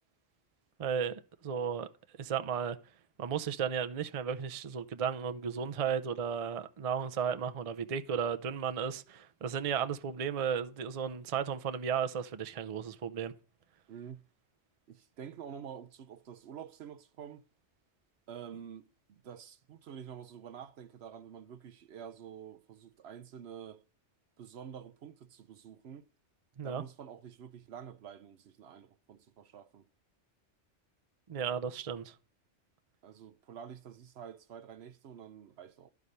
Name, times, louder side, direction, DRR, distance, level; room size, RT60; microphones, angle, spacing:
voice 1, 0.8-1.9 2.2-2.8 3.2-13.3 26.6-26.8 31.3-32.2, right 7 dB, 40° right, 0.5 m, -34 dB
voice 2, 13.9-14.2 14.9-17.5 18.3-23.8 24.4-26.1 26.6-29.8 33.0-35.9, right 8 dB, 65° right, 0.8 m, -48 dB
11.5 x 4.8 x 5.3 m
omnidirectional pair, 1.2 m